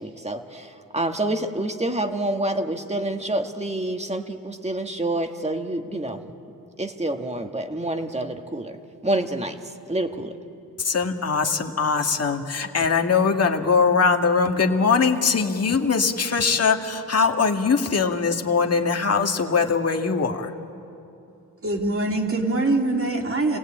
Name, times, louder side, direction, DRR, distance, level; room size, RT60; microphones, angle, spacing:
voice 1, 0.0-6.3 6.8-8.8 9.0-10.4, right 1 dB, 15° right, 5 dB, 1.9 m, -27 dB
voice 2, 10.8-20.5, left 5 dB, 40° left, 3 dB, 1.9 m, -21 dB
voice 3, 21.6-23.6, right 2 dB, 35° right, 1 dB, 3.3 m, -23 dB
28.5 x 17.5 x 8.7 m, 2.8 s
cardioid pair, 55°, 37 cm